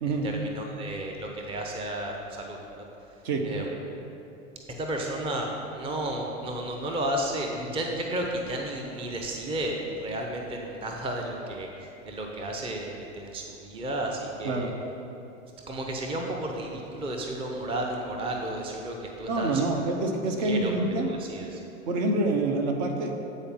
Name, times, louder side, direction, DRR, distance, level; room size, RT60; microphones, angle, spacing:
voice 1, 0.1-2.8 3.4-3.7 4.8-14.7 15.7-19.8 20.4-21.6, right 1 dB, 15° right, 1 dB, 0.6 m, -33 dB
voice 2, 19.3-21.2 21.9-23.1, right 2 dB, 55° right, 3 dB, 1.1 m, -26 dB
8.9 x 4.2 x 5.5 m, 2.9 s
hypercardioid pair, 100°, 40 cm